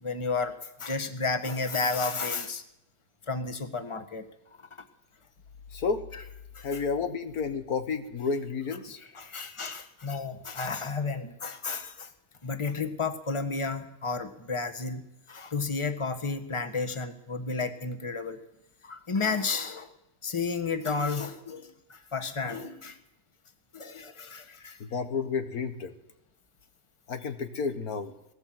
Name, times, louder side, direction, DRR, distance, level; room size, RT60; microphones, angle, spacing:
voice 1, 0.0-2.6 3.2-4.2 4.6-4.7 6.1-6.2 6.5-6.8 9.0-12.1 12.4-18.4 18.8-19.9 20.2-23.0 23.7-24.8, left 4 dB, 20° left, 7 dB, 1.5 m, -32 dB
voice 2, 5.7-6.0 6.6-9.0 24.8-25.9 27.1-28.1, left 5 dB, 90° left, 7 dB, 2.0 m, -31 dB
19.5 x 17.5 x 7.8 m, 0.85 s
omnidirectional pair, 1.5 m